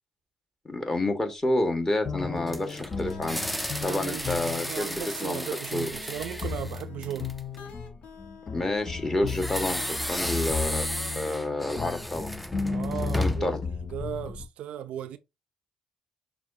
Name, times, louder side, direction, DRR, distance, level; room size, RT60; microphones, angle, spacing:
voice 1, 0.6-3.4 3.8-5.4 5.7-5.9 8.5-10.9 11.1-12.3 13.2-13.6, left 1 dB, 25° left, 1.4 m, -29 dB
sound 1, 2.0-14.5, left 5 dB, 45° left, 0.6 m, -35 dB
sound 2, 2.1-9.7, left 5 dB, 70° left, 1.2 m, -48 dB
sound 3, 2.2-7.6 9.3-13.6, equal, ahead, 0.4 m, -34 dB
voice 2, 3.8-4.3 4.7-7.3 12.7-15.2, right 10 dB, 75° right, 0.3 m, -36 dB
5.9 x 2.4 x 2.6 m
supercardioid pair, 60°, 2 cm